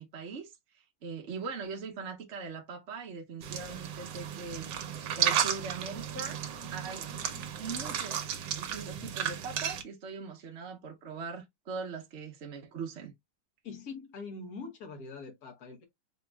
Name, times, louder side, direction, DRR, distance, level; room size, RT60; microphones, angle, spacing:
voice 1, 0.0-6.4 6.7-7.1 7.6-13.1, right 5 dB, 50° right, 0.9 m, -41 dB
sound 1, 3.4-9.8, right 9 dB, 70° right, 1.4 m, -34 dB
voice 2, 13.6-15.8, left 4 dB, 55° left, 1.5 m, -43 dB
5.1 x 2.9 x 2.3 m
omnidirectional pair, 2.0 m